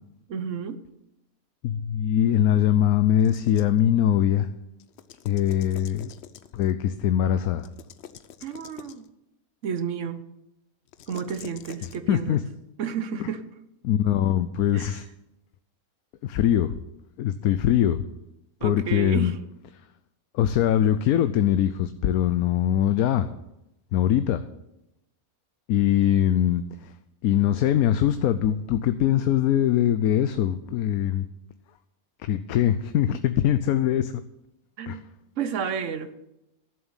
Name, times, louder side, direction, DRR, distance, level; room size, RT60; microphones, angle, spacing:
voice 1, 0.3-0.8 8.4-9.0 9.6-10.2 11.1-12.4 12.8-13.4 14.7-15.0 18.6-19.4 34.8-35.0 35.4-36.1, right 7 dB, 60° right, 12 dB, 1.1 m, -31 dB
voice 2, 1.6-4.5 5.2-6.1 6.5-7.7 12.1-12.4 13.2-13.3 13.8-15.1 16.2-16.8 17.2-18.1 18.6-19.3 20.3-23.3 23.9-24.5 25.7-26.9 27.2-31.3 32.2-34.2 34.9-35.0, left 10 dB, 80° left, 11 dB, 1.1 m, -22 dB
sound 1, 3.2-3.8 4.8-6.7 7.6-9.1 10.9-12.0, left 9 dB, 60° left, 0.8 m, -46 dB
12.0 x 7.2 x 8.8 m, 0.90 s
omnidirectional pair, 1.5 m